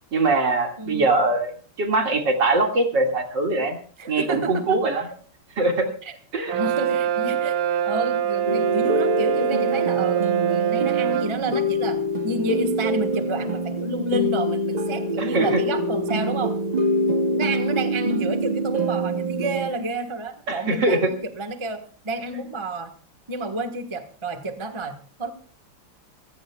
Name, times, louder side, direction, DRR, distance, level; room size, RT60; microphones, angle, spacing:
voice 1, 0.1-1.5 1.8-3.8 4.1-5.1 5.6-5.9 6.3-6.6 15.2-15.6 20.5-21.1, right 2 dB, 55° right, 3 dB, 2.7 m, -22 dB
voice 2, 0.8-1.1 4.0-4.8 6.0-6.2 6.5-7.6 7.8-16.6 17.3-22.9 23.3-25.3, right 2 dB, 20° right, 6 dB, 1.0 m, -30 dB
Brass instrument, 6.5-11.4, right 9 dB, 90° right, 1.8 m, -24 dB
sound 1, 8.4-19.7, equal, 70° right, 0.4 m, -25 dB
26.0 x 16.0 x 2.3 m, 0.42 s
omnidirectional pair, 2.3 m